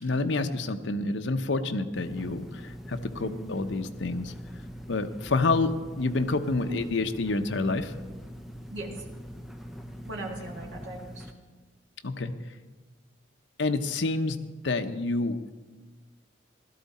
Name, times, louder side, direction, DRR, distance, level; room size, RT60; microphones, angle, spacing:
voice 1, 0.0-4.3 4.9-7.9 12.0-12.3 13.6-14.4 14.6-15.5, left 3 dB, 70° left, 8 dB, 0.8 m, -28 dB
sound 1, 1.9-11.3, equal, ahead, 0.7 m, -43 dB
voice 2, 8.7-9.1 10.1-11.3, right 1 dB, 85° right, -1 dB, 1.9 m, -38 dB
16.0 x 12.5 x 4.2 m, 1.3 s
head